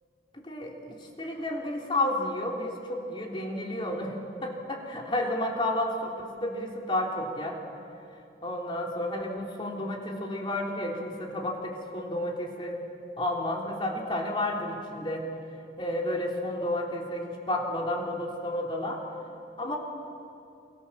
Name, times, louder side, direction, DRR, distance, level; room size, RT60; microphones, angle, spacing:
voice 1, 0.3-7.6 8.4-12.8 13.2-15.3 15.8-19.0 19.6-19.8, left 1 dB, 30° left, 0 dB, 3.6 m, -31 dB
28.5 x 24.5 x 7.6 m, 2.6 s
head